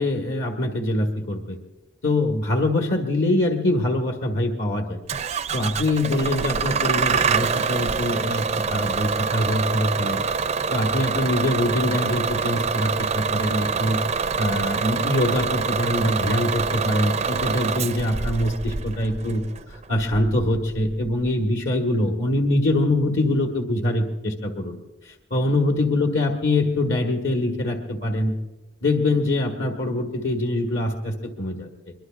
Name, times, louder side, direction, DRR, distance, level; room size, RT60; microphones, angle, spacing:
voice 1, 0.0-1.6 2.0-5.0 5.5-10.2 10.7-14.0 14.4-24.8 25.0-28.4 28.8-31.9, left 1 dB, 65° left, 1 dB, 1.6 m, -24 dB
Bus / Engine starting, 5.1-21.3, right 5 dB, 35° right, 0.4 m, -26 dB
23.0 x 22.5 x 2.5 m, 1.0 s
head